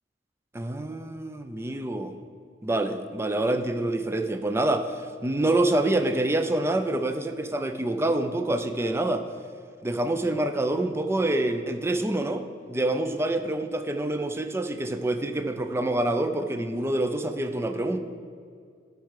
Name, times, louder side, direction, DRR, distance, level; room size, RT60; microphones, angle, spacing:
voice 1, 0.5-2.2 2.6-4.9 5.2-9.3 9.8-18.0, right 1 dB, 15° right, 8 dB, 0.4 m, -26 dB
12.5 x 4.7 x 4.7 m, 2.3 s
head